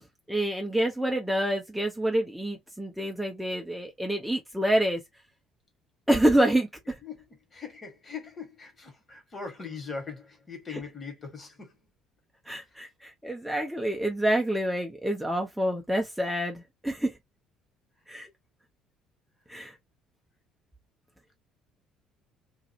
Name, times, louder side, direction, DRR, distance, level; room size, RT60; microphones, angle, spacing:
voice 1, 0.3-5.0 6.1-6.9 12.5-17.2 18.1-18.3 19.5-19.7, right 1 dB, 5° right, 0.6 m, -27 dB
voice 2, 7.0-11.9 12.6-12.8 18.0-18.1 19.5-19.6, left 5 dB, 30° left, 1.5 m, -41 dB
2.5 x 2.4 x 2.8 m
figure-of-eight pair, 55°, 0 cm